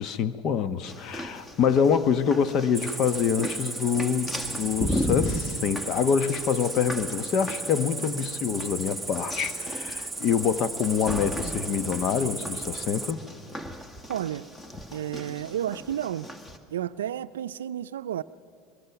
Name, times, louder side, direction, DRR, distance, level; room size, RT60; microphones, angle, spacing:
voice 1, 0.0-13.2, left 7 dB, 50° left, 13 dB, 1.0 m, -26 dB
sound 1, 0.9-16.6, left 1 dB, 15° left, 1.8 m, -36 dB
Cricket, 2.7-13.1, right 3 dB, 10° right, 1.0 m, -35 dB
voice 2, 14.1-14.5 14.9-16.3 16.7-18.2, right 11 dB, 85° right, 15 dB, 0.5 m, -31 dB
23.5 x 22.0 x 5.9 m, 2.6 s
hypercardioid pair, 90°, 0 cm